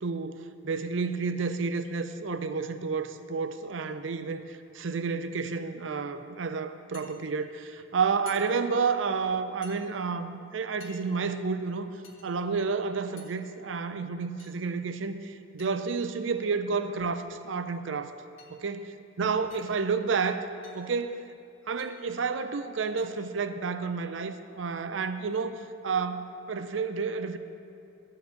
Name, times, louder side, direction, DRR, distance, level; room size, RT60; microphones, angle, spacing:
voice 1, 0.0-11.9 12.2-18.1 18.5-18.8 19.2-20.5 20.7-21.2 21.7-27.4, right 5 dB, 80° right, 10 dB, 0.5 m, -30 dB
sound 1, 6.9-7.1 8.2-8.5 9.6-9.8 10.8-10.9 12.0-12.3 13.2-13.3 14.4-14.6 15.6-15.7 16.8-16.9 17.3-17.5 18.4-18.5 19.5-19.8 20.6-20.9 21.8-22.0 23.0-23.1, left 5 dB, 85° left, 1.6 m, -51 dB
12.0 x 4.7 x 7.8 m, 2.6 s
head